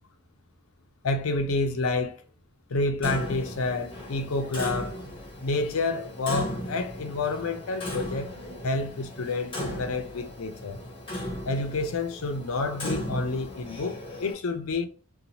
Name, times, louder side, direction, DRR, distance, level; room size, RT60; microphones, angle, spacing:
voice 1, 1.0-2.2 2.7-5.0 5.4-8.3 8.6-10.8 11.5-14.9, left 3 dB, 85° left, 0.5 m, -29 dB
Clock, 3.0-14.3, equal, 25° left, 0.8 m, -36 dB
2.8 x 2.2 x 2.7 m
head